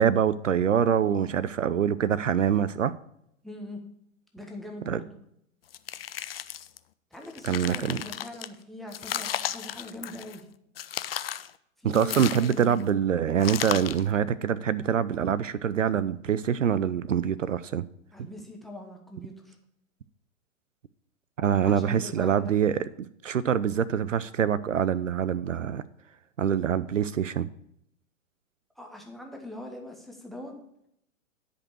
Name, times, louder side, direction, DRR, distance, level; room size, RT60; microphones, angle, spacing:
voice 1, 0.0-2.9 4.9-5.0 7.5-8.0 11.9-17.8 21.4-25.8 26.4-27.5, right 8 dB, 65° right, 17 dB, 0.6 m, -25 dB
voice 2, 1.0-1.3 3.4-3.8 4.3-5.1 7.1-10.5 11.8-12.8 18.1-19.6 21.6-22.5 28.8-30.6, left 1 dB, ahead, 2 dB, 1.0 m, -42 dB
sound 1, 5.7-6.8 7.2-8.5 8.9-10.4 10.8-11.5 11.9-12.8 13.4-14.1, left 10 dB, 45° left, 0.5 m, -34 dB
10.5 x 5.4 x 6.3 m, 0.74 s
figure-of-eight pair, 110°, 40 cm